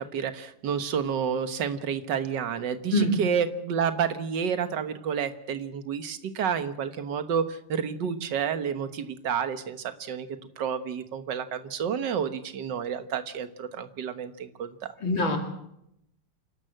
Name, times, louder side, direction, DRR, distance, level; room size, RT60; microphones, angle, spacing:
voice 1, 0.0-14.9, right 7 dB, 55° right, 10 dB, 1.8 m, -30 dB
voice 2, 15.0-15.4, left 1 dB, 60° left, 3 dB, 3.3 m, -24 dB
28.0 x 12.5 x 7.9 m, 0.79 s
omnidirectional pair, 2.4 m